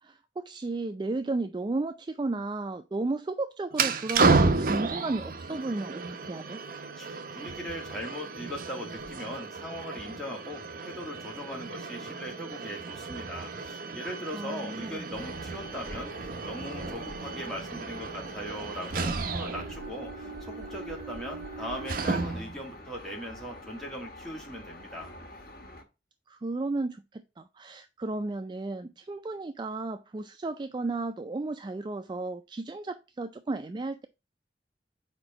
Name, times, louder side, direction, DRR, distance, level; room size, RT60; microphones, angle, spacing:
voice 1, 0.0-6.6 14.3-15.0 26.3-34.1, right 2 dB, 25° right, 0.3 m, -34 dB
sound 1, 3.7-22.6, right 3 dB, 55° right, 0.7 m, -32 dB
voice 2, 6.9-25.1, equal, ahead, 2.1 m, -40 dB
sound 2, 15.1-25.8, left 1 dB, 55° left, 1.7 m, -46 dB
4.9 x 4.4 x 5.9 m
head